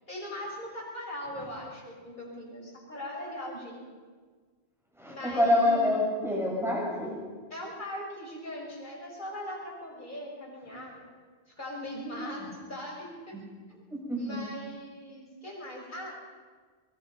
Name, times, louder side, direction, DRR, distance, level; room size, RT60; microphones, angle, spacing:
voice 1, 0.1-3.9 5.1-6.0 7.5-11.1 11.5-13.3 14.2-16.2, left 1 dB, 50° left, -2 dB, 6.0 m, -40 dB
voice 2, 5.0-7.2 12.0-12.5 13.9-14.2, left 1 dB, ahead, -4 dB, 8.0 m, -27 dB
23.5 x 22.5 x 5.5 m, 1.5 s
omnidirectional pair, 1.1 m